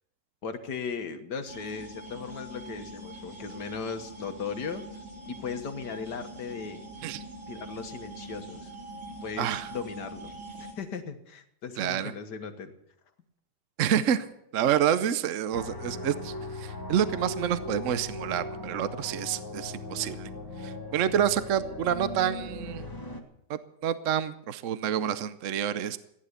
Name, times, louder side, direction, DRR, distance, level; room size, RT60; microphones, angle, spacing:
voice 1, 0.4-4.8 5.3-6.8 7.5-8.7 9.2-10.3 10.6-12.7, left 5 dB, 85° left, 8 dB, 1.9 m, -37 dB
sound 1, 1.5-10.7, right 1 dB, 20° right, 3.9 m, -43 dB
voice 2, 9.4-9.7 11.8-12.1 13.8-14.3 14.5-20.3 20.6-22.9 23.5-26.0, right 9 dB, 60° right, 13 dB, 1.0 m, -28 dB
sound 2, 15.5-23.2, left 2 dB, 15° left, 1.7 m, -39 dB
15.5 x 10.0 x 8.1 m, 0.76 s
omnidirectional pair, 1.8 m